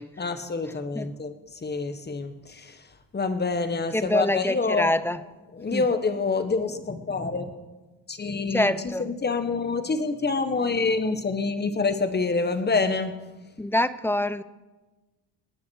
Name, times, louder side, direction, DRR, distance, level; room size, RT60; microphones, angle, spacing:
voice 1, 0.2-4.9 5.5-7.5 8.1-8.7 9.0-13.2, left 4 dB, 25° left, 1.4 m, -27 dB
voice 2, 3.9-5.2 5.7-5.9 8.5-9.1 13.6-14.4, left 1 dB, 5° left, 0.5 m, -25 dB
27.0 x 9.4 x 4.7 m
cardioid pair, 115°, 44 cm